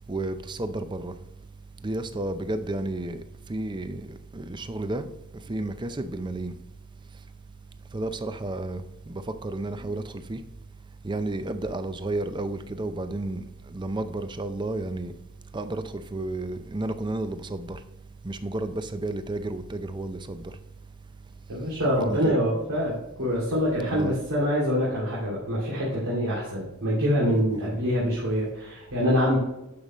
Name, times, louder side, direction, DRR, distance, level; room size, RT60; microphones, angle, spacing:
voice 1, 0.1-1.2 1.8-3.2 3.5-5.1 5.5-6.5 7.9-10.4 11.0-15.1 15.5-17.8 18.2-20.5 22.1-22.3 23.8-24.2 27.5-27.8, right 2 dB, 20° right, 0.5 m, -32 dB
voice 2, 21.5-22.9 23.2-29.4, equal, 80° right, 2.8 m, -25 dB
11.5 x 5.4 x 3.1 m
head